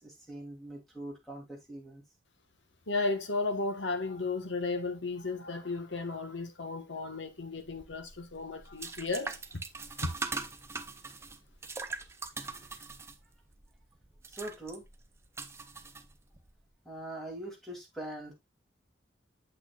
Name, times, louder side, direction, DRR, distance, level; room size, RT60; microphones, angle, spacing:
voice 1, 0.0-2.0 14.3-14.8 16.8-18.3, right 1 dB, ahead, 2.8 m, -42 dB
voice 2, 2.9-9.6 10.0-10.2, left 3 dB, 80° left, 1.3 m, -34 dB
sound 1, 7.6-16.5, right 3 dB, 15° right, 0.6 m, -42 dB
8.5 x 7.6 x 2.4 m
head